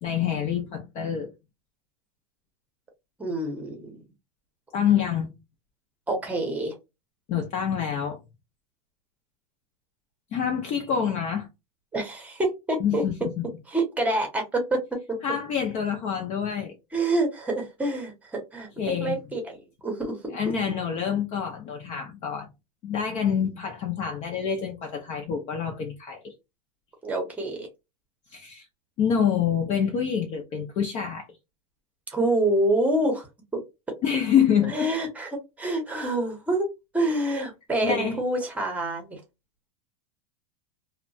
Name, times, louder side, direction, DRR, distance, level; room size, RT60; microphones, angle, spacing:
voice 1, 0.0-1.3 4.7-5.3 7.3-8.2 10.3-11.5 12.8-13.5 15.2-16.7 18.8-19.2 20.3-22.5 22.8-26.3 28.3-28.7 29.0-31.3 34.0-35.1 37.8-38.2, left 8 dB, 35° left, 0.6 m, -26 dB
voice 2, 3.2-3.9 6.1-6.7 11.9-13.0 13.7-15.2 16.9-18.7 19.0-19.6 19.8-20.4 27.0-27.7 32.1-33.3 34.7-35.3 35.6-36.7 36.9-39.2, right 1 dB, 10° right, 0.8 m, -27 dB
2.8 x 2.2 x 2.6 m
supercardioid pair, 150°, 19 cm